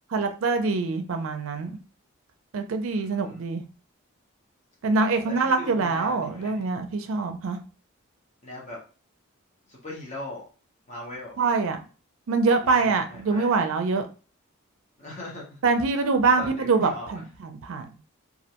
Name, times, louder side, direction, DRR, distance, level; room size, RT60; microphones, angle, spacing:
voice 1, 0.1-1.7 2.5-3.6 4.8-7.6 11.4-11.8 12.3-14.1 15.6-18.0, right 4 dB, 70° right, 7 dB, 0.4 m, -24 dB
voice 2, 2.9-3.4 5.2-6.7 8.4-8.8 9.7-10.5 10.9-11.4 12.6-13.6 15.0-15.6 16.4-17.1, left 1 dB, 35° left, -3 dB, 0.7 m, -40 dB
2.4 x 2.1 x 2.8 m, 0.36 s
head